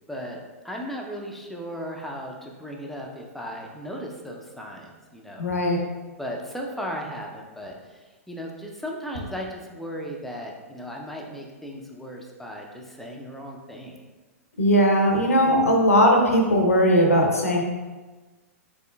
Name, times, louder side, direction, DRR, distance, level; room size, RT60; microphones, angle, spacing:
voice 1, 0.1-0.4 0.6-5.5 6.2-13.9 15.3-15.7, equal, 5° left, 0 dB, 0.5 m, -36 dB
voice 2, 5.4-5.8 14.6-17.6, equal, 80° left, 1 dB, 0.7 m, -19 dB
3.9 x 3.5 x 2.3 m, 1.3 s
figure-of-eight pair, 105°, 8 cm